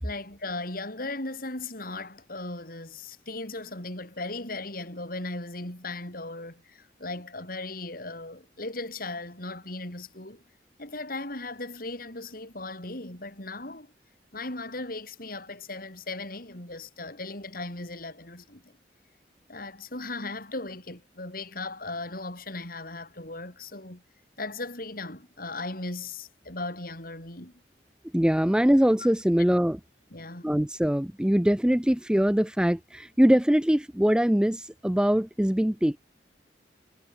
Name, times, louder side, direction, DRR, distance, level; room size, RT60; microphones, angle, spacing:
voice 1, 0.0-10.4 10.8-13.9 14.3-18.7 19.5-24.0 24.4-27.5 30.1-30.6, left 2 dB, 55° left, 7.4 m, -37 dB
voice 2, 28.1-29.8 30.4-36.0, equal, 5° right, 0.5 m, -22 dB
head